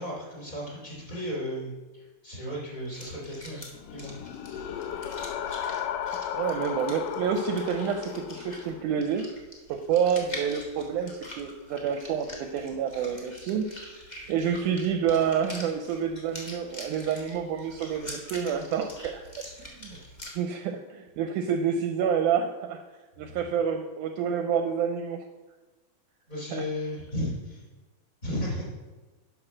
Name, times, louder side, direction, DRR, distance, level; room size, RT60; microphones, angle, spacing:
voice 1, 0.0-3.6 3.9-4.2 4.4-5.0 6.2-6.4 19.9-20.0 26.3-27.6 28.2-28.7, equal, 25° left, -4 dB, 3.4 m, -35 dB
sound 1, 2.8-20.3, left 1 dB, 50° left, 0.5 m, -45 dB
sound 2, 3.7-8.8, left 9 dB, 80° left, 2.2 m, -34 dB
voice 2, 6.3-9.3 9.7-13.7 13.9-14.0 14.3-19.3 19.6-20.0 20.4-22.8 23.2-25.2 26.5-26.7, right 7 dB, 80° right, 6 dB, 1.9 m, -28 dB
11.0 x 6.1 x 6.2 m, 1.2 s
omnidirectional pair, 4.0 m